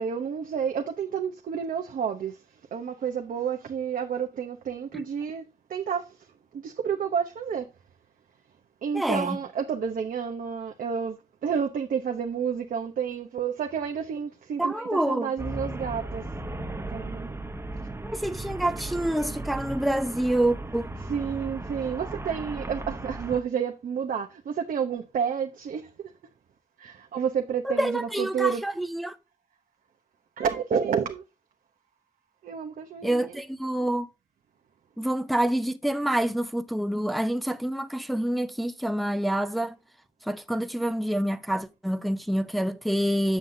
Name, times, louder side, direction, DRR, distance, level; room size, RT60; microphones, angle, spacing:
voice 1, 0.0-2.4 2.7-5.4 5.7-6.1 6.5-7.7 8.8-11.2 11.4-16.2 16.9-17.4 21.0-26.1 26.8-28.7 30.4-31.2 32.4-33.4, right 7 dB, 70° right, 0.9 m, -30 dB
voice 2, 8.9-9.4 14.6-15.3 18.0-20.9 27.6-29.2 33.0-34.1 35.0-39.7 40.2-43.4, right 1 dB, ahead, 0.7 m, -27 dB
Traffic noise roadway noise, 15.4-23.4, right 1 dB, 20° right, 1.0 m, -36 dB
7.6 x 7.1 x 2.7 m
cardioid pair, 55°, 14 cm